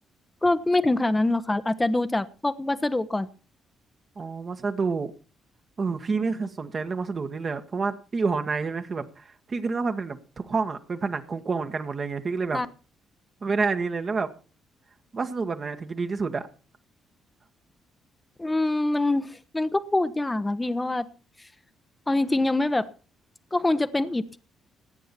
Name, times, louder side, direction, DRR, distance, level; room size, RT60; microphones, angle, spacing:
voice 1, 0.4-3.3 12.5-12.7 18.4-21.0 22.1-22.9 23.5-24.4, left 2 dB, 15° left, 12 dB, 0.9 m, -24 dB
voice 2, 4.2-5.1 5.8-10.2 10.4-12.6 13.4-14.3 15.1-16.5, right 4 dB, 40° right, 6 dB, 1.4 m, -28 dB
17.5 x 9.2 x 4.3 m, 0.37 s
figure-of-eight pair, 45°, 0 cm